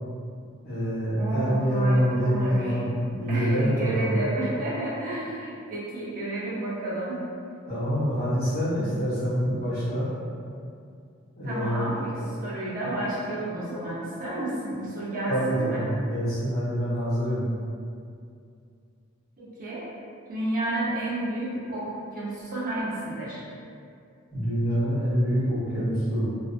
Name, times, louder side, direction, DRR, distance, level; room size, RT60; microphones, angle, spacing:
voice 1, 0.6-4.1 7.7-10.1 11.4-12.3 15.3-17.4 24.3-26.3, equal, 50° left, -12 dB, 1.0 m, -26 dB
voice 2, 1.2-2.8 3.3-7.2 11.4-15.9 19.4-19.9 20.3-23.4, right 1 dB, 45° right, -8 dB, 0.6 m, -31 dB
2.4 x 2.4 x 2.4 m, 2.4 s
head